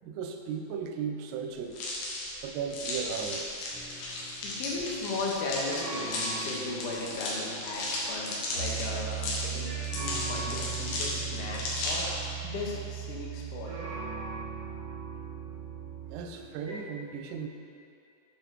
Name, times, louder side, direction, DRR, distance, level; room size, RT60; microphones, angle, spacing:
voice 1, 0.0-1.8 2.4-3.5 16.1-17.5, right 6 dB, 90° right, 4 dB, 2.7 m, -36 dB
sound 1, 1.7-12.2, left 2 dB, 80° left, 3.3 m, -35 dB
sound 2, 3.7-9.3 9.6-16.8, right 1 dB, 65° right, 1.4 m, -43 dB
voice 2, 4.4-9.7 10.0-12.1 12.4-13.7, left 3 dB, 65° left, -3 dB, 2.2 m, -36 dB
Piano, 8.6-16.2, right 11 dB, 45° left, 2.2 m, -38 dB
9.1 x 5.7 x 4.5 m, 2.6 s
omnidirectional pair, 4.6 m